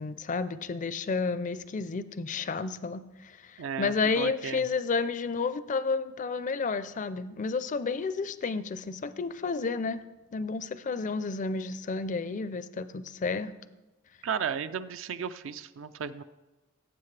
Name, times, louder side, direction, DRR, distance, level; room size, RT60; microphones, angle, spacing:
voice 1, 0.0-10.0 10.3-13.5, left 4 dB, 40° left, 14 dB, 0.4 m, -31 dB
voice 2, 3.6-4.6 14.2-16.2, right 7 dB, 65° right, 12 dB, 0.4 m, -34 dB
17.5 x 7.8 x 3.3 m, 1.1 s
head